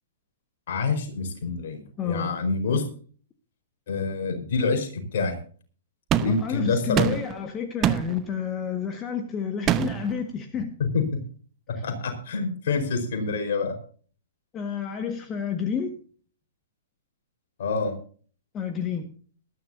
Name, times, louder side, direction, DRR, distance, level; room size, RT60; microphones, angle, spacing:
voice 1, 0.7-1.8 2.0-2.9 3.9-5.3 6.2-7.2 10.8-11.2 11.7-13.8 17.6-18.0, left 4 dB, 50° left, 5 dB, 4.6 m, -26 dB
voice 2, 2.0-2.4 6.2-10.7 14.5-15.9 18.5-19.1, left 6 dB, 20° left, 6 dB, 1.6 m, -30 dB
sound 1, 6.1-6.5 7.0-7.4 7.8-8.2 9.7-10.1, right 11 dB, 25° right, 0.9 m, -24 dB
19.5 x 13.5 x 2.7 m, 0.42 s
figure-of-eight pair, 110°, 0 cm